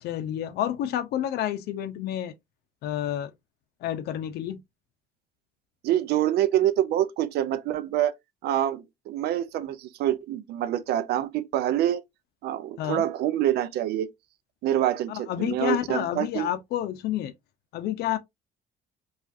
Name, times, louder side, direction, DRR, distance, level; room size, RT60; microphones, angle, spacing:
voice 1, 0.0-2.3 2.8-3.3 3.8-4.6 12.8-13.0 15.1-17.3 17.7-18.2, left 12 dB, 75° left, 0.6 m, -29 dB
voice 2, 5.8-8.1 8.4-12.0 12.4-14.1 14.6-16.5, right 12 dB, 70° right, 0.5 m, -26 dB
4.9 x 2.4 x 2.6 m
cardioid pair, 110°, 17 cm